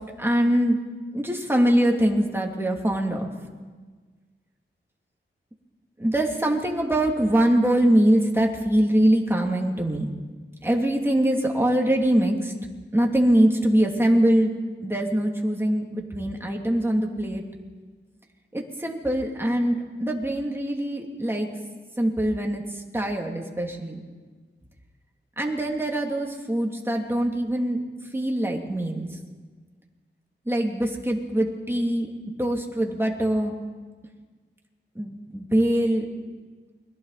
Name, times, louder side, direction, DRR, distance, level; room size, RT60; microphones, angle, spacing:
voice 1, 0.2-0.8 1.1-3.3 6.0-10.1 10.6-12.5 12.9-14.5 14.8-17.4 18.5-21.5 22.0-22.6 22.9-24.0 25.4-27.8 28.1-29.1 30.5-32.1 32.4-33.5 35.0-36.0, right 1 dB, 10° right, 0 dB, 2.9 m, -23 dB
29.0 x 22.0 x 4.3 m, 1.4 s
wide cardioid pair, 85°, 20 cm